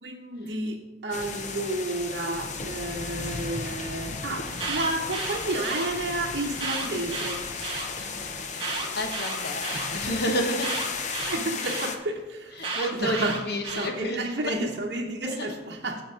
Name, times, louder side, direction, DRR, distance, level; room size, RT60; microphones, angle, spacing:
voice 1, 0.0-7.4 9.7-10.1 11.2-13.4 13.7-16.0, right 2 dB, 65° right, -1 dB, 0.9 m, -31 dB
sound 1, 1.1-12.0, left 4 dB, 40° left, 0.7 m, -34 dB
Alarm, 4.4-5.9 6.5-7.9 8.5-9.9 10.6-11.9 12.6-13.9, right 3 dB, 30° right, 1.3 m, -33 dB
voice 2, 8.5-10.7 12.6-14.5 15.2-15.6, equal, 60° left, 5 dB, 1.0 m, -31 dB
7.4 x 7.1 x 5.0 m, 1.1 s
head